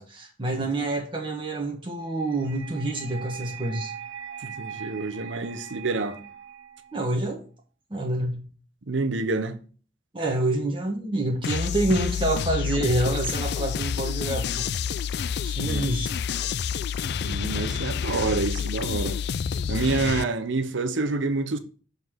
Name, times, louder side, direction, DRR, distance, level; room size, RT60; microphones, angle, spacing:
voice 1, 0.0-3.9 6.9-7.4 7.9-8.4 10.1-14.7 15.4-16.2, right 2 dB, 25° right, 1.3 m, -27 dB
sound 1, 2.2-7.2, right 8 dB, 60° right, 1.6 m, -41 dB
voice 2, 4.4-6.2 8.9-9.6 15.6-15.9 17.2-19.2 19.7-21.6, right 3 dB, 85° right, 0.9 m, -27 dB
sound 2, 11.4-20.2, left 7 dB, 60° left, 0.3 m, -28 dB
7.1 x 4.1 x 6.2 m
head